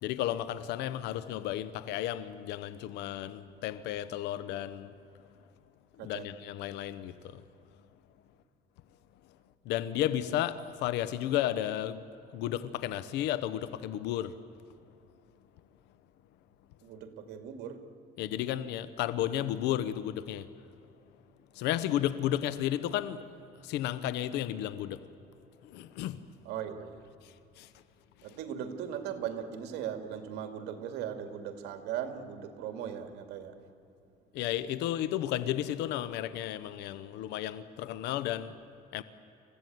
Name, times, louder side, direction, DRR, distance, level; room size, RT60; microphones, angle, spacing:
voice 1, 0.0-4.9 6.0-7.4 9.6-12.1 12.3-14.4 18.2-20.5 21.5-23.2 23.6-25.1 25.6-26.2 27.2-27.7 34.3-38.6 38.9-39.0, left 12 dB, 90° left, 0.9 m, -33 dB
voice 2, 16.8-17.8 22.4-22.5 26.4-27.1 28.2-33.5, right 9 dB, 85° right, 2.4 m, -38 dB
28.5 x 15.5 x 9.4 m
cardioid pair, 110°, 17 cm